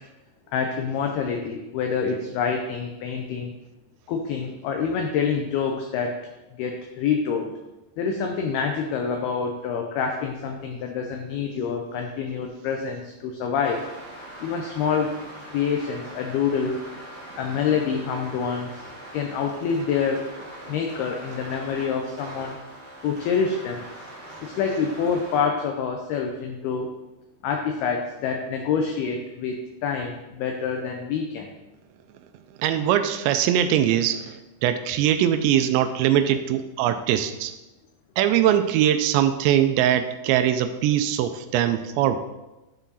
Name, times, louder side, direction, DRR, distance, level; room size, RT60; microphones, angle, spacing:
voice 1, 0.5-3.5 4.1-6.1 6.6-7.5 8.0-13.8 14.4-15.1 15.5-16.8 17.4-18.8 19.1-20.3 20.7-22.6 23.0-23.8 24.4-26.9 27.4-31.5, left 6 dB, 80° left, 3 dB, 2.3 m, -26 dB
sound 1, 13.6-25.4, right 1 dB, 40° right, 1.5 m, -42 dB
voice 2, 32.6-37.5 38.2-42.2, right 10 dB, 85° right, 10 dB, 2.8 m, -22 dB
10.0 x 6.2 x 4.1 m, 1.0 s
omnidirectional pair, 5.2 m